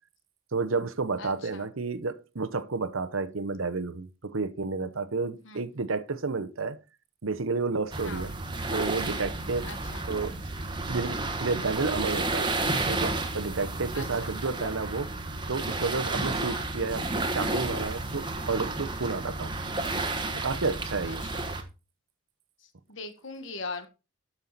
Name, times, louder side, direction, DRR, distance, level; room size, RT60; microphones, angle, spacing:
voice 1, 0.5-6.8 7.2-8.3 8.7-9.7 10.1-10.4 10.9-12.5 12.9-15.1 15.5-19.5 20.3-21.3, right 4 dB, 80° right, 0.9 m, -31 dB
voice 2, 1.2-1.7 5.4-5.6 8.0-8.2 9.6-10.0 13.9-14.3 16.5-16.6 21.1-21.4 22.9-23.9, left 3 dB, 65° left, 1.5 m, -40 dB
sound 1, 7.9-21.6, right 2 dB, 20° right, 1.2 m, -32 dB
12.5 x 5.7 x 4.1 m
head